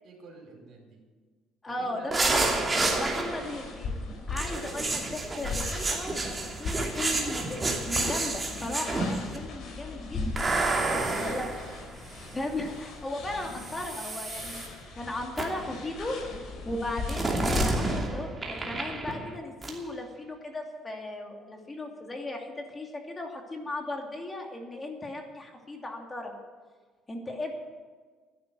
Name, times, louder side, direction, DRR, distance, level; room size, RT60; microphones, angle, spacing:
voice 1, 0.0-1.0 1.7-3.0 4.5-4.8, right 3 dB, 65° right, 1 dB, 4.6 m, -47 dB
voice 2, 1.6-2.4 3.0-10.5 11.1-11.8 12.3-26.3 27.1-27.5, left 2 dB, 25° left, 2 dB, 2.7 m, -37 dB
sound 1, 2.1-3.6 4.4-9.4 10.4-12.5 13.5-14.7 15.4-15.7 17.1-19.4 19.6-19.8, right 2 dB, 25° right, 2.8 m, -30 dB
sound 2, 2.5-18.0, left 3 dB, 65° left, 4.2 m, -38 dB
11.5 x 10.5 x 9.4 m, 1.5 s
supercardioid pair, 85°, 0 cm